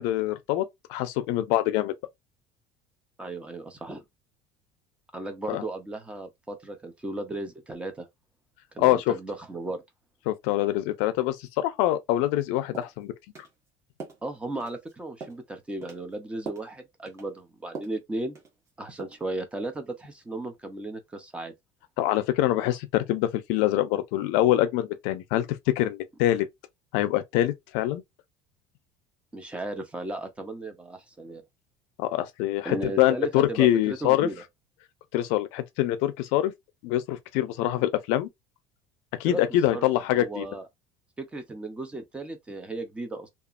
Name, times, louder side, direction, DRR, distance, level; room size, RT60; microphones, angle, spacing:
voice 1, 0.0-1.9 5.5-5.6 8.8-9.1 10.3-13.1 22.0-26.5 26.9-28.0 32.0-34.3 35.1-36.5 36.8-38.3 39.2-40.5, left 14 dB, 70° left, 0.5 m, -25 dB
voice 2, 3.2-4.0 5.1-8.1 8.7-9.8 14.2-18.4 18.8-21.5 29.3-31.4 32.6-34.4 39.2-39.4 39.7-39.8 40.1-40.6 41.2-43.3, right 2 dB, 10° right, 0.5 m, -35 dB
sound 1, 12.3-12.4 12.7-13.0 13.3-13.5 14.0-14.2 14.6-14.9 15.2-15.5 15.8-16.0 16.4-16.7 17.0-17.3 17.7-18.0 18.3-18.7 19.0-19.2, right 4 dB, 25° right, 1.1 m, -42 dB
2.9 x 2.4 x 2.4 m
cardioid pair, 160°, 11 cm